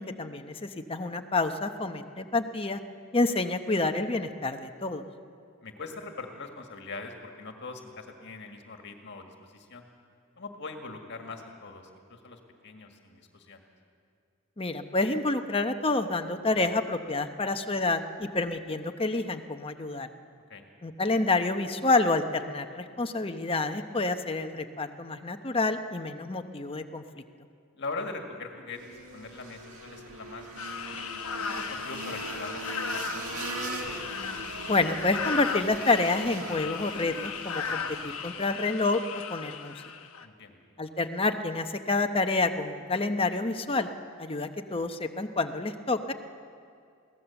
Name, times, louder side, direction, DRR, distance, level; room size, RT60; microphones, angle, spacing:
voice 1, 0.0-2.8 3.1-5.0 14.6-20.1 20.8-27.2 34.7-39.0 39.3-39.7 40.8-43.9 44.2-46.1, left 3 dB, 25° left, 7 dB, 0.9 m, -28 dB
voice 2, 5.6-9.8 10.4-13.6 20.5-20.7 27.8-30.5 30.9-31.1 31.4-33.8 40.2-40.6, left 3 dB, 55° left, 4 dB, 1.8 m, -42 dB
sound 1, 28.7-38.6, right 2 dB, 90° right, 1.8 m, -40 dB
sound 2, 30.6-40.3, left 6 dB, 70° left, 1.1 m, -36 dB
22.5 x 17.0 x 7.1 m, 2.4 s
head